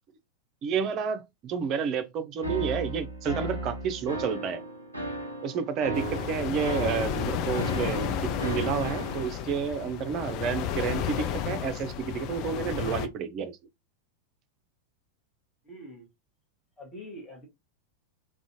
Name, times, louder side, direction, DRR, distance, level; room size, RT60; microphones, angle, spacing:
voice 1, 0.6-4.6 5.4-13.6, right 7 dB, 35° right, 0.4 m, -30 dB
sound 1, 2.4-9.3, right 1 dB, 85° left, 0.6 m, -35 dB
sound 2, 5.9-13.1, left 9 dB, 40° left, 0.3 m, -32 dB
voice 2, 15.6-16.1 16.8-17.5, equal, 20° left, 1.0 m, -44 dB
2.5 x 2.1 x 2.7 m
figure-of-eight pair, 90°, 0 cm